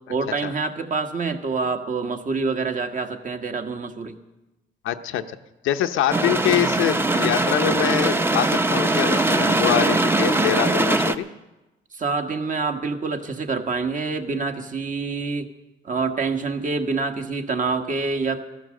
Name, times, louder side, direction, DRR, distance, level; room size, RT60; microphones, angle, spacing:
voice 1, 0.1-4.2 11.9-15.5 15.8-18.4, right 4 dB, 40° right, 6 dB, 1.5 m, -26 dB
voice 2, 4.8-5.4 5.6-11.3, left 11 dB, 90° left, 8 dB, 0.8 m, -24 dB
sound 1, 6.1-11.2, right 2 dB, 10° right, 0.8 m, -21 dB
14.0 x 13.5 x 6.5 m, 1.0 s
cardioid pair, 90°, 20 cm